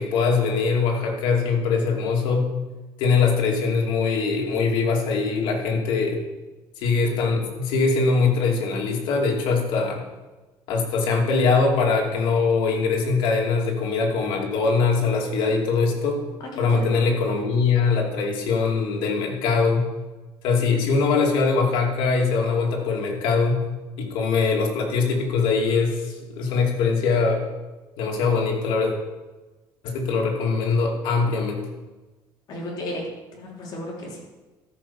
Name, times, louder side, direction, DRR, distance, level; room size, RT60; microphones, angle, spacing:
voice 1, 0.0-2.5 3.0-6.2 6.8-10.0 10.7-16.2 16.6-19.9 20.4-23.6 24.0-27.4 28.0-28.9 29.8-31.6, left 4 dB, 80° left, 0 dB, 2.6 m, -22 dB
voice 2, 16.5-17.0 32.5-33.0 33.4-34.2, left 1 dB, 55° left, -2 dB, 3.2 m, -33 dB
13.0 x 5.4 x 7.1 m, 1.2 s
cardioid pair, 130°, 8 cm